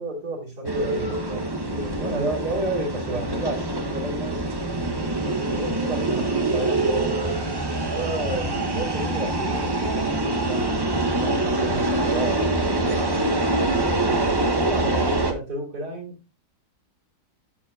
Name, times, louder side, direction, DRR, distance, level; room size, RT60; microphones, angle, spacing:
voice 1, 0.0-3.7 3.9-4.6 5.5-7.1 7.8-10.8 11.2-13.3 14.6-16.2, right 2 dB, 70° right, -2 dB, 3.2 m, -32 dB
sound 1, 0.6-15.3, right 2 dB, 25° right, 0.6 m, -25 dB
12.0 x 4.4 x 2.6 m, 0.29 s
omnidirectional pair, 1.8 m